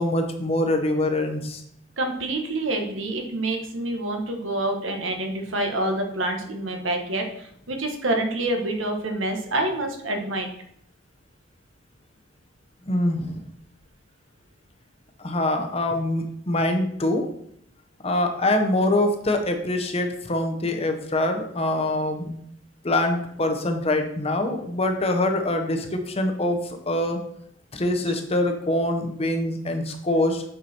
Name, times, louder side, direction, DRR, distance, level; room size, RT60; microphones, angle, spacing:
voice 1, 0.0-1.6 12.9-13.4 15.2-17.3 18.0-22.3 22.8-27.2 27.7-30.4, left 1 dB, 30° left, 5 dB, 0.9 m, -24 dB
voice 2, 2.0-10.5, right 1 dB, 75° right, 3 dB, 1.3 m, -27 dB
7.8 x 5.0 x 4.3 m, 0.68 s
head